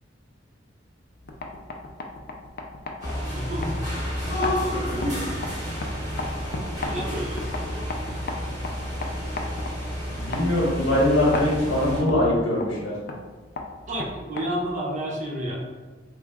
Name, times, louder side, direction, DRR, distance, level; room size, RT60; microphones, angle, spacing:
sound 1, 1.1-14.9, left 2 dB, 55° left, 0.4 m, -37 dB
sound 2, 3.0-12.0, equal, 20° right, 1.5 m, -30 dB
voice 1, 3.3-3.8 6.8-7.9 13.9-15.7, equal, 40° right, -3 dB, 0.7 m, -31 dB
voice 2, 4.8-5.2 10.1-13.0, left 1 dB, 85° left, -4 dB, 1.0 m, -22 dB
3.4 x 2.0 x 3.4 m, 1.3 s
head